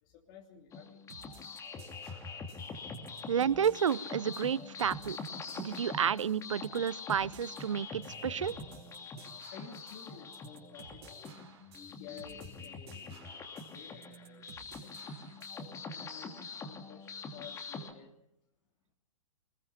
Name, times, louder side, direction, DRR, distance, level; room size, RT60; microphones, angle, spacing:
voice 1, 0.0-1.0 9.2-11.2 12.0-15.2 15.8-18.1, left 8 dB, 40° left, 0 dB, 3.2 m, -53 dB
sound 1, 0.7-17.9, left 4 dB, 20° left, 2.9 m, -44 dB
sound 2, 1.1-15.7, right 7 dB, 50° right, 4.8 m, -56 dB
voice 2, 3.3-5.2 5.6-8.5, right 8 dB, 70° right, 21 dB, 0.9 m, -31 dB
25.0 x 21.0 x 5.9 m, 0.78 s
figure-of-eight pair, 115°, 17 cm